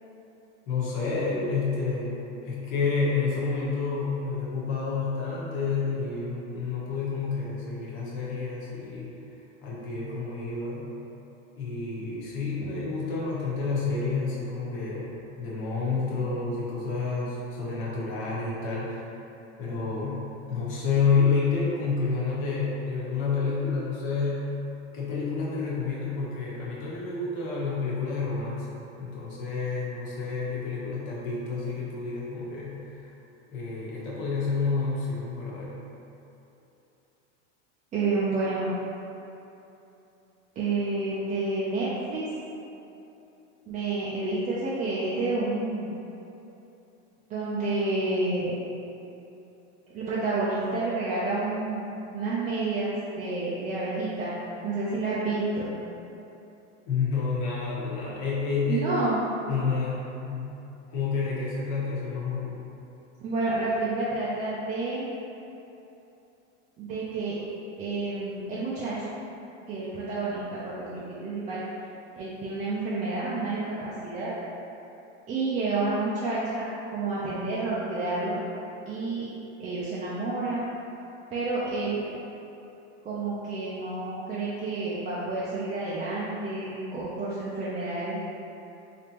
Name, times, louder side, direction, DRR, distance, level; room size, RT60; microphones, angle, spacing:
voice 1, 0.7-9.1 9.6-11.0 11.5-19.0 19.6-24.4 24.9-33.1 33.5-35.8 56.9-58.9 59.5-60.6 60.9-62.6, left 4 dB, 55° left, -7 dB, 1.2 m, -29 dB
voice 2, 37.9-38.7 40.6-42.3 43.7-45.9 47.3-48.6 49.9-54.4 54.6-55.7 58.7-59.2 63.2-65.1 66.8-67.3 67.8-69.1 69.7-71.6 72.2-74.3 75.3-76.7 76.9-78.4 78.9-79.3 79.6-80.7 81.3-82.0 83.0-88.2, right 3 dB, 20° right, -9 dB, 0.4 m, -29 dB
3.5 x 2.8 x 2.9 m, 2.9 s
supercardioid pair, 120°, 36 cm